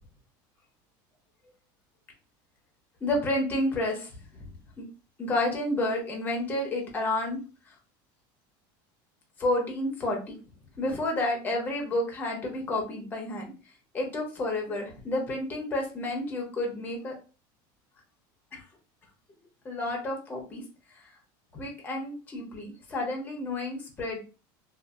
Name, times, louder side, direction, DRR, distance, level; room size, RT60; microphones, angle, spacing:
voice 1, 3.0-4.1 4.4-4.5 4.8-4.9 5.2-7.4 9.4-10.4 10.8-13.5 13.9-17.1 18.5-18.6 19.6-20.6 21.5-24.2, left 1 dB, 15° left, 0 dB, 0.7 m, -30 dB
2.6 x 2.4 x 2.4 m, 0.34 s
cardioid pair, 160°, 11 cm